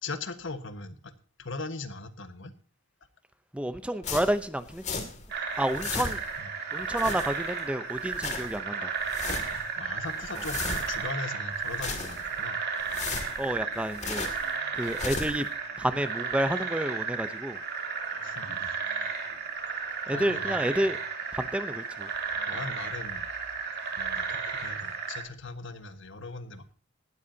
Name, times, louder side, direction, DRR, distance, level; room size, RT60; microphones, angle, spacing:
voice 1, 0.0-1.1 1.4-2.5 5.9-6.1 6.4-6.5 9.2-12.6 18.2-18.7 20.1-20.9 22.5-23.3 23.9-26.6, left 3 dB, 65° left, 9 dB, 1.5 m, -39 dB
voice 2, 3.5-5.1 5.6-6.2 6.7-8.9 13.4-14.3 14.7-15.5 15.8-17.6 20.1-21.0 21.3-22.1 22.5-22.6, right 1 dB, 5° right, 11 dB, 0.7 m, -30 dB
sound 1, 4.0-5.3 5.6-6.4 6.8-7.6 8.0-8.6 9.0-9.7 10.1-11.1 11.6-12.4 12.8-14.5 14.8-15.5, left 4 dB, 35° left, 2.5 m, -36 dB
sound 2, 5.3-25.2, right 5 dB, 55° right, 3.1 m, -34 dB
18.0 x 13.0 x 2.8 m, 0.41 s
head